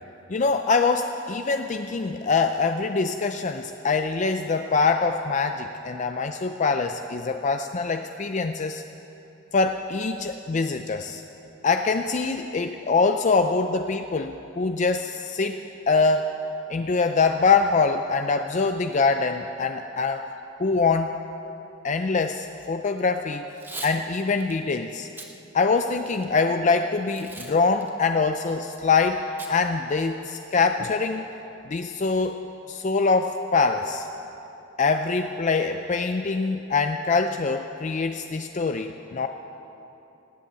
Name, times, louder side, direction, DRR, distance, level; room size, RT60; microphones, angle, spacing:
voice 1, 0.3-8.8 9.5-11.2 11.6-15.6 15.9-16.3 16.7-20.3 20.6-21.1 21.8-23.4 23.8-25.1 25.5-29.2 29.5-31.3 31.7-32.4 32.7-34.1 34.8-39.3, left 4 dB, 35° left, 7 dB, 0.4 m, -24 dB
Packing tape duct tape / Tearing, 23.5-24.0 24.4-24.5 25.0-25.3 25.8-26.4 27.1-27.5 27.8-27.9 29.4-29.5 29.9-30.0 30.3-30.6, right 2 dB, 10° right, 1.1 m, -39 dB
18.5 x 8.2 x 8.7 m, 2.9 s
head